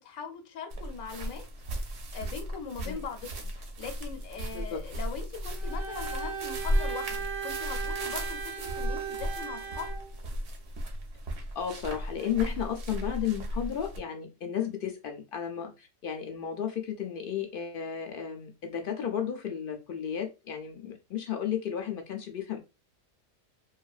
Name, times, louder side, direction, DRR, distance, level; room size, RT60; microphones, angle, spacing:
voice 1, 0.0-1.4 1.8-9.9, left 6 dB, 85° left, 1.1 m, -41 dB
sound 1, 0.7-14.0, equal, 60° right, 0.8 m, -35 dB
Bowed string instrument, 5.6-10.1, right 6 dB, ahead, 0.6 m, -37 dB
voice 2, 11.6-22.6, left 8 dB, 65° left, 0.5 m, -33 dB
2.7 x 2.4 x 2.3 m
omnidirectional pair, 1.4 m